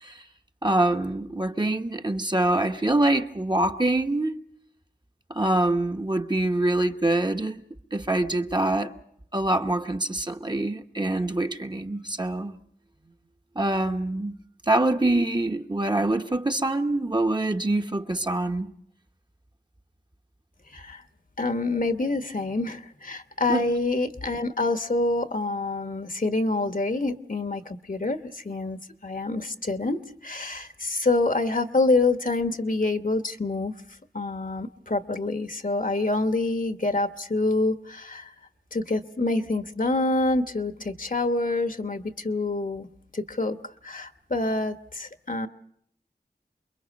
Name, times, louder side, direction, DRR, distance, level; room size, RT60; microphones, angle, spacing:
voice 1, 0.6-4.4 5.3-7.6 7.9-8.9 9.3-12.6 13.5-14.4 14.7-18.7 23.5-23.7, right 2 dB, 25° right, 1.1 m, -25 dB
voice 2, 20.7-21.0 21.4-33.7 34.1-38.3 38.7-42.9 43.1-43.6 43.8-45.5, left 2 dB, 50° left, 1.2 m, -26 dB
28.5 x 22.0 x 5.3 m
wide cardioid pair, 40°, 17 cm